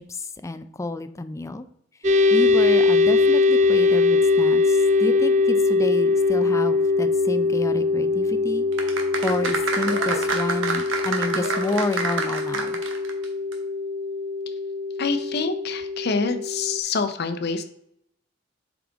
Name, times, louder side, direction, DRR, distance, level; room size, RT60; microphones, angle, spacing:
voice 1, 0.0-1.7 2.3-12.8, left 2 dB, 15° left, 11 dB, 0.4 m, -30 dB
sound 1, 2.0-16.8, left 3 dB, 40° right, 0.5 m, -22 dB
sound 2, 8.7-13.2 13.5-13.6, right 3 dB, 90° right, 1.2 m, -27 dB
voice 2, 15.0-17.7, left 4 dB, 60° left, 9 dB, 0.7 m, -26 dB
7.4 x 4.9 x 3.5 m, 0.74 s
head